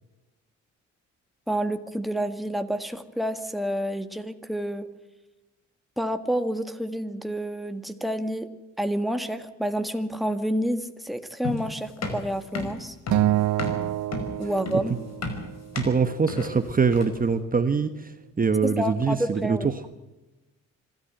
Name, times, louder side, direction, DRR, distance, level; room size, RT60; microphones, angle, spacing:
voice 1, 1.5-4.9 6.0-8.5 8.8-13.0 14.4-15.0 18.6-19.7, equal, ahead, 7 dB, 1.8 m, -29 dB
sound 1, 11.4-17.3, left 3 dB, 60° left, 5.3 m, -33 dB
Acoustic guitar, 13.1-15.5, right 15 dB, 70° right, 0.6 m, -26 dB
voice 2, 15.7-19.6, right 5 dB, 30° right, 10 dB, 1.2 m, -24 dB
26.0 x 13.5 x 7.9 m, 1.1 s
cardioid pair, 90°, 30 cm